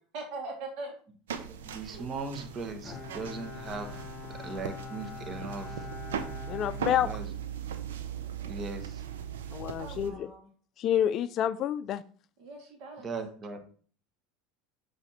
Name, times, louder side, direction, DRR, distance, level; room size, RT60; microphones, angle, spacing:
voice 1, 0.1-0.9 1.8-2.1 9.8-10.5 12.4-13.1, right 3 dB, 60° right, 1.9 m, -41 dB
sound 1, 1.3-10.1, right 8 dB, 90° right, 0.7 m, -39 dB
voice 2, 1.6-4.0 4.4-5.9 7.0-7.3 8.4-9.0 13.0-13.6, right 3 dB, 35° right, 1.2 m, -39 dB
Bowed string instrument, 2.8-7.7, left 6 dB, 30° left, 1.0 m, -44 dB
voice 3, 6.5-7.1 9.5-10.3 10.8-12.0, left 10 dB, 45° left, 0.4 m, -28 dB
7.0 x 3.4 x 4.3 m
supercardioid pair, 100°, 0 cm